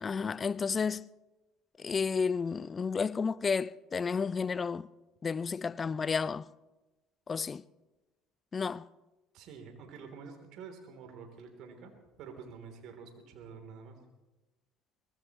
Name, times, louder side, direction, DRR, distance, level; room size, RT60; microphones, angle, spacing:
voice 1, 0.0-1.1 1.8-4.9 5.2-6.5 7.3-7.6 8.5-8.9, left 5 dB, 30° left, 0.5 m, -31 dB
voice 2, 9.3-11.9 12.2-14.0, right 5 dB, 60° right, 3.2 m, -48 dB
23.0 x 19.0 x 3.1 m
hypercardioid pair, 65°, 0 cm